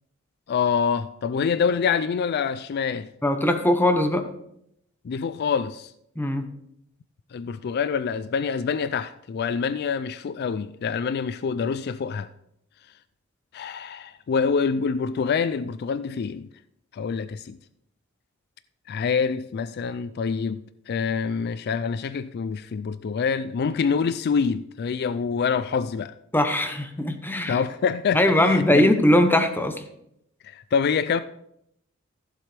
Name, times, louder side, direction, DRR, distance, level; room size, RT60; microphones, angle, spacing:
voice 1, 0.5-3.1 5.0-5.9 7.3-12.3 13.5-16.5 16.9-17.6 18.9-26.1 27.5-28.9 30.4-31.2, left 6 dB, 50° left, 0.3 m, -26 dB
voice 2, 3.2-4.3 6.2-6.5 26.3-27.6 28.1-29.8, left 1 dB, 10° left, 0.9 m, -20 dB
14.5 x 7.5 x 3.4 m
head